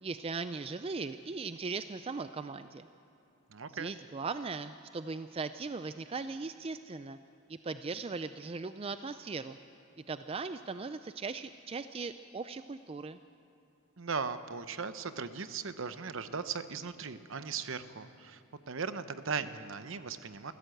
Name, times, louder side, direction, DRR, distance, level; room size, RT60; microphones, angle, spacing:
voice 1, 0.0-2.9 3.7-7.2 7.5-9.6 10.1-13.2, right 4 dB, 25° right, 11 dB, 0.4 m, -39 dB
voice 2, 3.5-3.9 14.0-18.4 18.7-20.5, right 5 dB, 60° right, 11 dB, 0.9 m, -38 dB
25.5 x 15.0 x 7.9 m, 2.9 s
head